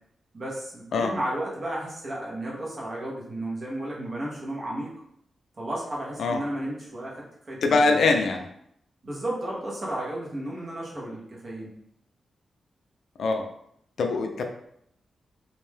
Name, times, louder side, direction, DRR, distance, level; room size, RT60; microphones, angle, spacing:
voice 1, 0.3-4.9 5.6-8.0 9.0-11.7, right 1 dB, 35° right, -4 dB, 0.8 m, -33 dB
voice 2, 7.6-8.5 13.2-13.5 14.0-14.4, left 3 dB, 70° left, 4 dB, 0.3 m, -23 dB
2.6 x 2.2 x 3.3 m, 0.73 s
wide cardioid pair, 160°, 0 cm